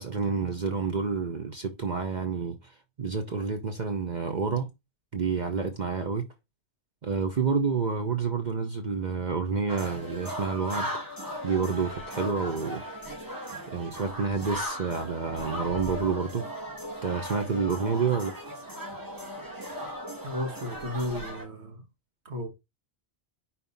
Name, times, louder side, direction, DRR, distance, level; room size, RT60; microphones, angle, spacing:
voice 1, 0.0-4.7 5.1-6.2 7.0-10.9 11.4-12.8 13.7-16.5 17.0-18.3, right 5 dB, 45° right, 0.9 m, -29 dB
sound 1, 9.7-21.4, equal, 20° right, 2.1 m, -37 dB
voice 2, 20.2-21.8 22.2-22.5, left 1 dB, 85° right, 1.6 m, -33 dB
5.4 x 4.3 x 4.1 m
omnidirectional pair, 1.1 m